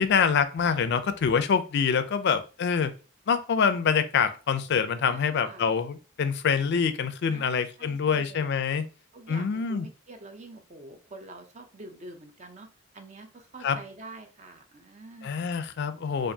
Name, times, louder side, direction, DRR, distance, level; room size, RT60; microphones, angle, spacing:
voice 1, 0.0-2.9 3.3-8.9 9.3-9.9 13.6-13.8 15.2-16.3, left 6 dB, 55° left, 11 dB, 0.4 m, -25 dB
voice 2, 5.1-5.7 7.3-8.5 9.1-12.7 12.9-15.5, right 2 dB, 35° right, 6 dB, 0.6 m, -46 dB
4.4 x 2.5 x 2.7 m, 0.34 s
head